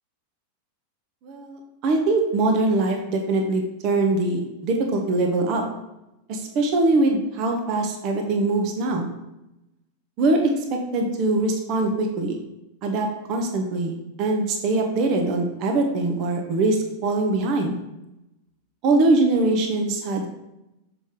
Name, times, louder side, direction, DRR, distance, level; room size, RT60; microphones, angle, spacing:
voice 1, 1.2-5.6 6.3-9.1 10.2-12.4 12.8-17.8 18.8-20.3, right 2 dB, 40° right, 3 dB, 1.0 m, -22 dB
6.8 x 5.0 x 3.7 m, 0.93 s
figure-of-eight pair, 90°, 0 cm